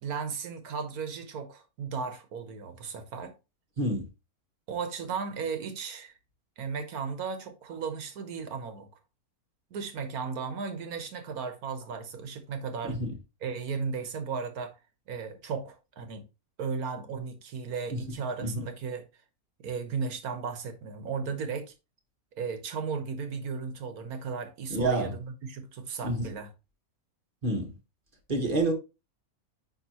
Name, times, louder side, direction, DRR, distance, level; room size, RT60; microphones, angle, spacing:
voice 1, 0.0-3.3 4.7-6.1 6.6-8.9 9.7-13.0 13.4-14.8 15.1-16.3 16.6-19.1 19.6-21.7 22.3-26.5, right 5 dB, 90° right, 1.5 m, -35 dB
voice 2, 24.7-25.1 26.0-26.3 27.4-27.7 28.3-28.7, right 2 dB, 35° right, 1.5 m, -28 dB
9.7 x 3.3 x 2.9 m
omnidirectional pair, 1.5 m